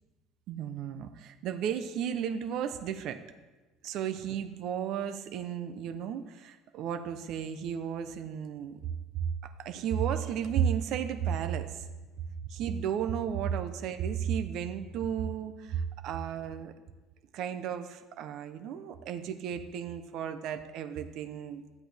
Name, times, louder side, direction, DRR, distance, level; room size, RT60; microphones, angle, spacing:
voice 1, 0.5-3.2 3.8-8.8 9.4-11.9 12.5-16.7 17.3-21.6, right 8 dB, 55° right, 8 dB, 0.6 m, -33 dB
12.5 x 8.3 x 3.4 m, 1.1 s
cardioid pair, 155°, 0 cm